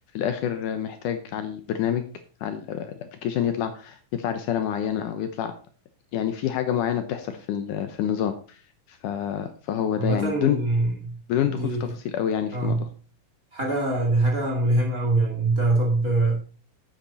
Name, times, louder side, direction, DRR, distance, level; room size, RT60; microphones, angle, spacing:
voice 1, 0.0-2.0 2.4-2.9 3.2-5.5 6.1-8.6 8.9-10.6 11.3-12.9, left 9 dB, 75° left, 2.2 m, -27 dB
voice 2, 10.0-11.8 12.5-12.8 13.5-16.4, right 2 dB, 30° right, 2.3 m, -24 dB
10.0 x 8.7 x 4.1 m
omnidirectional pair, 4.1 m